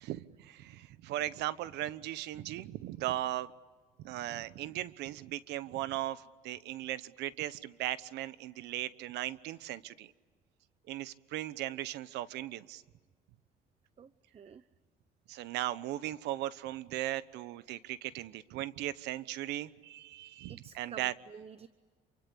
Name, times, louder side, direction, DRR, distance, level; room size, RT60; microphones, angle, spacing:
voice 1, 0.0-3.5 4.0-10.1 10.9-12.8 15.3-21.1, right 14 dB, 85° right, 16 dB, 1.1 m, -38 dB
voice 2, 14.0-14.6 20.5-21.7, right 7 dB, 35° right, 14 dB, 0.8 m, -50 dB
27.5 x 25.0 x 8.6 m, 1.4 s
cardioid pair, 110°, 17 cm